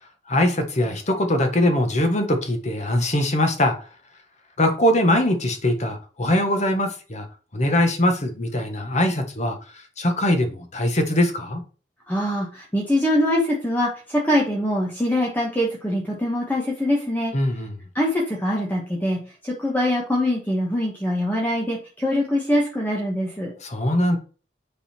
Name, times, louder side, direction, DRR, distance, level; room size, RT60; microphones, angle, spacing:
voice 1, 0.3-3.7 4.6-7.3 7.5-11.6 17.3-17.8 23.6-24.2, left 1 dB, 40° left, 1.4 m, -22 dB
voice 2, 12.1-17.3 17.9-23.5, left 1 dB, 10° left, 1.5 m, -23 dB
8.6 x 4.1 x 4.4 m
head